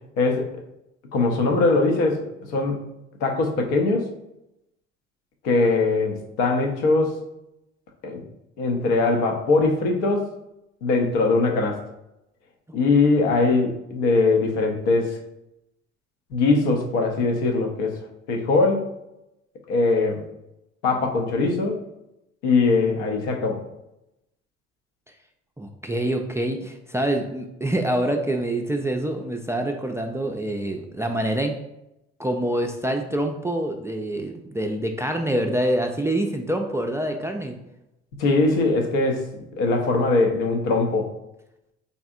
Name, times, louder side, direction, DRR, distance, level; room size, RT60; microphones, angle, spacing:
voice 1, 0.2-0.5 1.1-2.8 3.2-4.1 5.4-7.2 8.0-8.2 8.6-10.3 10.8-11.8 12.7-15.2 16.3-18.0 18.3-18.8 19.7-20.2 20.8-21.8 22.4-23.6 38.2-41.1, left 3 dB, 75° left, 2 dB, 0.8 m, -21 dB
voice 2, 25.6-31.5 32.2-37.6, right 1 dB, 10° right, 4 dB, 0.3 m, -26 dB
4.1 x 3.4 x 2.4 m, 0.87 s
hypercardioid pair, 60°, 35 cm